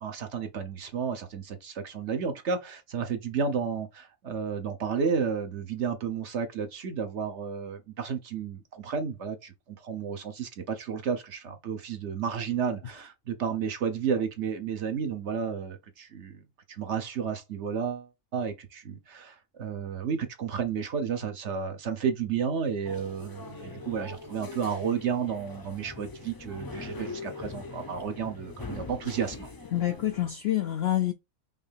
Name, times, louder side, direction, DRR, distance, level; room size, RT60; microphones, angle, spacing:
voice 1, 0.0-16.4 16.7-29.5, right 6 dB, 55° right, 1.1 m, -32 dB
sound 1, 22.8-30.3, left 3 dB, 25° left, 0.5 m, -42 dB
voice 2, 29.7-31.1, left 13 dB, 65° left, 0.6 m, -27 dB
5.5 x 2.8 x 3.3 m
omnidirectional pair, 1.5 m